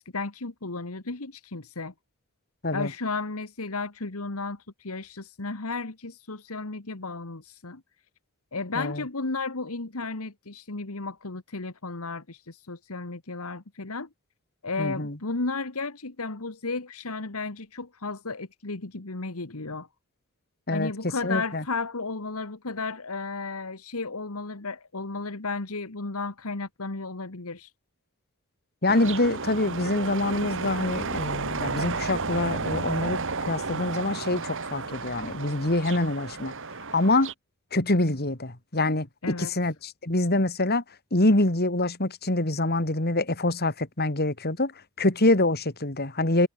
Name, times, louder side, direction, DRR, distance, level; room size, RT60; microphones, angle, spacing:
voice 1, 0.0-1.9 2.7-7.8 8.5-14.1 14.6-19.9 20.7-27.7 29.0-29.2 39.2-39.5, left 3 dB, 75° left, 1.7 m, -34 dB
voice 2, 14.8-15.2 20.7-20.9 21.2-21.6 28.8-36.5 36.9-37.3 37.7-40.8 41.1-44.7 45.0-46.5, left 2 dB, 45° left, 3.1 m, -25 dB
sound 1, 28.9-37.3, right 4 dB, 60° right, 2.2 m, -32 dB
head